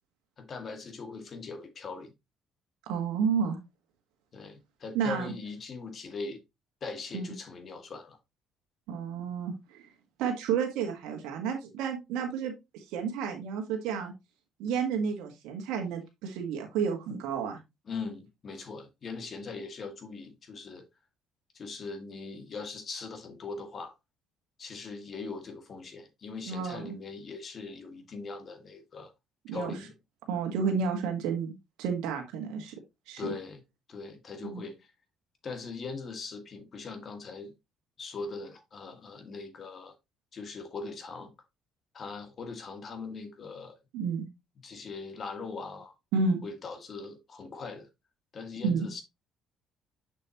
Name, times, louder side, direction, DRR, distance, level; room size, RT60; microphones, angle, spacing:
voice 1, 0.4-2.1 4.3-6.4 6.8-8.2 17.9-20.8 21.5-23.9 24.6-29.1 29.5-29.9 33.2-33.6 33.9-34.9 35.4-37.5 38.0-39.9 40.3-41.3 41.9-43.8 44.6-45.9 46.4-47.9 48.3-49.0, left 4 dB, 45° left, 2.0 m, -40 dB
voice 2, 2.9-3.6 4.9-5.3 7.1-7.3 8.9-9.9 10.2-14.1 14.6-17.6 26.5-27.0 29.5-29.7 30.3-32.7 33.1-33.3 34.4-34.6 43.9-44.3 46.1-46.4 48.6-48.9, right 6 dB, 75° right, 1.4 m, -31 dB
6.6 x 6.0 x 2.9 m
hypercardioid pair, 60°, 0 cm